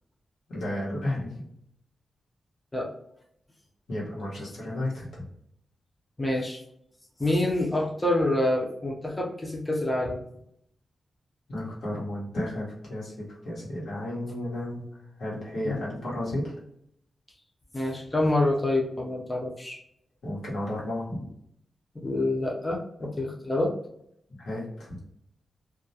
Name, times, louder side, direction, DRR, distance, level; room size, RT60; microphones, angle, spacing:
voice 1, 0.5-1.3 3.9-5.3 11.5-14.9 15.2-16.5 20.2-21.2 24.4-25.0, left 1 dB, 90° left, -5 dB, 1.0 m, -33 dB
voice 2, 6.2-6.6 7.2-10.2 15.6-15.8 17.7-19.8 22.0-23.7, left 1 dB, 15° left, -2 dB, 0.5 m, -27 dB
2.3 x 2.1 x 2.7 m, 0.71 s
wide cardioid pair, 135°, 0 cm